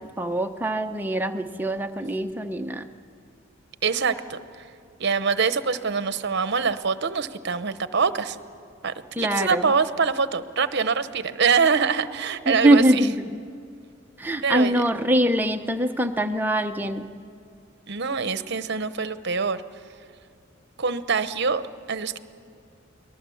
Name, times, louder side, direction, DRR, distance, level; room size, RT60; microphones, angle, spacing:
voice 1, 0.2-2.9 9.2-9.7 12.5-13.3 14.2-17.1, right 1 dB, 10° right, 5 dB, 0.8 m, -23 dB
voice 2, 3.8-4.7 5.0-8.4 8.8-13.1 14.4-14.8 17.9-19.6 20.8-22.2, right 5 dB, 55° right, 12 dB, 0.9 m, -24 dB
29.5 x 19.5 x 7.1 m, 2.3 s
head